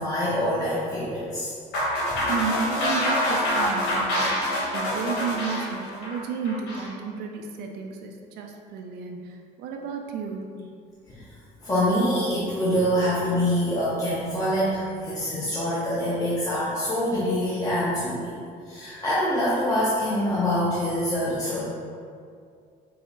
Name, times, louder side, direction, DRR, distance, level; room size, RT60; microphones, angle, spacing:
voice 1, 0.0-1.5 11.1-11.2 11.6-18.3 18.7-21.7, equal, 20° left, -9 dB, 0.7 m, -25 dB
sound 1, 1.7-6.9, equal, 90° left, 1.0 m, -26 dB
voice 2, 2.3-10.7, right 5 dB, 75° right, 2 dB, 0.4 m, -32 dB
4.7 x 2.1 x 3.7 m, 2.3 s
cardioid pair, 110°, 17 cm